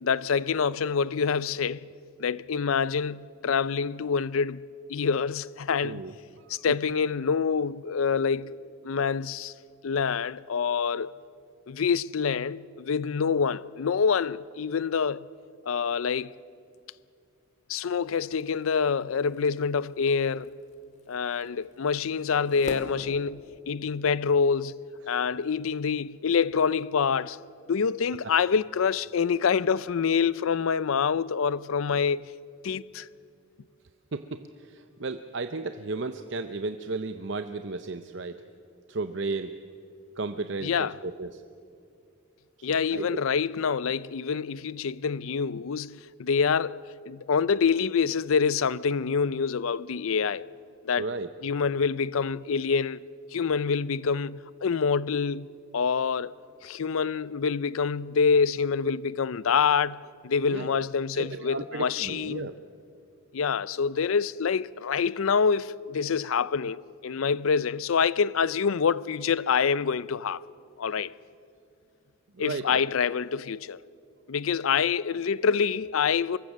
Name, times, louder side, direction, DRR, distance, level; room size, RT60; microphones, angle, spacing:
voice 1, 0.0-1.9 2.2-6.0 6.5-8.6 8.8-9.5 9.8-11.1 11.7-15.3 15.6-16.4 17.7-20.5 21.1-24.8 25.1-27.4 27.7-32.3 32.6-33.1 40.6-41.0 42.6-50.5 50.8-51.1 51.4-53.0 53.3-55.5 55.7-56.4 56.6-62.5 63.3-70.4 70.8-71.1 72.4-73.8 74.3-76.4, left 6 dB, 80° left, 0.5 m, -26 dB
sound 1, 17.9-23.9, left 1 dB, 35° left, 2.0 m, -46 dB
voice 2, 34.1-34.4 34.7-38.3 38.9-39.5 40.2-41.4 42.6-43.2 51.0-51.3 60.5-60.7 61.2-62.5 72.4-72.8, right 3 dB, 60° right, 0.6 m, -34 dB
24.5 x 22.0 x 6.4 m
head